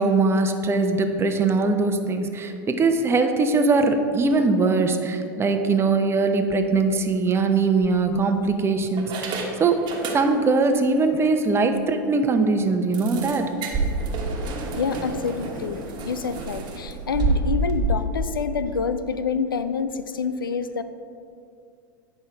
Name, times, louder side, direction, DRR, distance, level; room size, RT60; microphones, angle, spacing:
voice 1, 0.0-9.8 10.1-13.5, right 3 dB, 20° right, 6 dB, 0.8 m, -21 dB
Unlocking Large Metal Door, 6.9-7.1 7.8-8.5 9.0-10.6 10.9-11.1 11.5-11.6 11.9-12.0 12.9-17.9, right 3 dB, 40° right, 1.3 m, -29 dB
voice 2, 14.7-20.8, left 5 dB, 90° left, 11 dB, 0.5 m, -27 dB
9.5 x 5.5 x 4.5 m, 2.5 s
hypercardioid pair, 95°, 11 cm